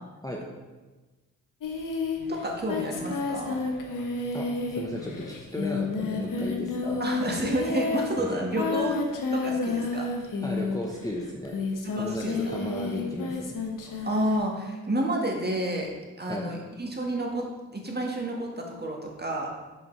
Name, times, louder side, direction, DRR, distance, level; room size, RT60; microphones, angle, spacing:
Singing, 1.6-11.0 11.4-14.4, left 3 dB, 55° left, 1.0 m, -31 dB
voice 1, 2.3-3.6 7.0-9.0 9.3-10.1 11.8-12.5 14.0-15.9 16.2-17.4 17.7-19.5, right 1 dB, 25° right, 0 dB, 1.6 m, -30 dB
voice 2, 4.8-7.0 8.2-8.4 10.4-11.6 12.0-13.6 16.3-16.5, left 1 dB, 10° left, -2 dB, 1.0 m, -35 dB
6.7 x 5.3 x 3.3 m, 1.2 s
hypercardioid pair, 40°, 38 cm